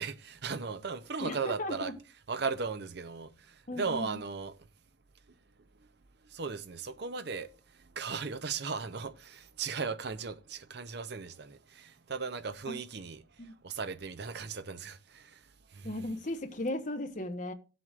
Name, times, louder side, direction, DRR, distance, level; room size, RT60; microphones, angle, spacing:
voice 1, 0.0-1.9 2.3-4.6 5.3-5.4 6.2-16.1, right 5 dB, 60° right, 0.7 m, -37 dB
voice 2, 1.2-1.9 3.7-4.2 12.7-12.8 13.4-13.5 15.8-17.5, left 1 dB, 45° left, 1.1 m, -36 dB
17.0 x 7.7 x 2.5 m
head